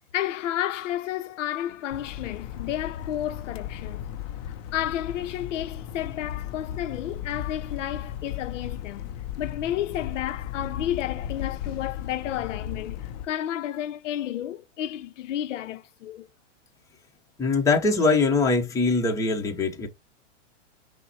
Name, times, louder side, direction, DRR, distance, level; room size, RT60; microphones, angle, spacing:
voice 1, 0.1-4.1 4.4-9.1 9.4-16.3, left 12 dB, 75° left, 0.6 m, -31 dB
sound 1, 1.9-13.3, left 10 dB, 35° left, 0.4 m, -36 dB
voice 2, 17.4-19.9, left 3 dB, 10° left, 0.8 m, -22 dB
5.6 x 2.1 x 4.1 m
hypercardioid pair, 140°, 37 cm